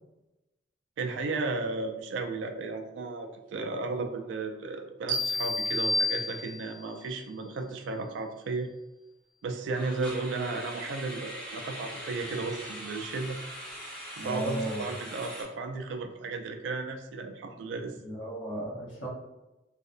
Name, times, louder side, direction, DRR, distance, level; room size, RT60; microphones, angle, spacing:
voice 1, 1.0-8.7 9.4-13.4 14.2-18.0, right 3 dB, 75° right, 4 dB, 0.3 m, -34 dB
sound 1, 3.5-3.8 4.1-4.3 4.8-4.9 9.7-15.4, equal, 5° left, 0.5 m, -42 dB
sound 2, 5.1-6.9, left 2 dB, 50° right, 0.7 m, -30 dB
voice 2, 14.2-14.8 18.0-19.1, right 1 dB, 70° left, -4 dB, 0.8 m, -34 dB
2.7 x 2.0 x 2.4 m, 1.0 s
head